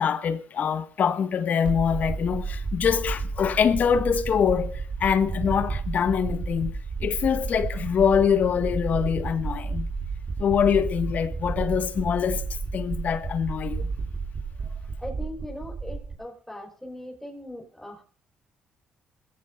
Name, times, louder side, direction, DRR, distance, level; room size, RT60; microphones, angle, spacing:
voice 1, 0.0-6.7 7.0-9.9 10.4-12.5 12.7-13.9, left 7 dB, 55° left, 1.7 m, -24 dB
sound 1, 1.6-16.1, right 4 dB, 40° right, 4.9 m, -32 dB
voice 2, 14.6-18.0, left 1 dB, 5° left, 4.9 m, -40 dB
22.0 x 16.0 x 2.6 m
cardioid pair, 80°, 3 cm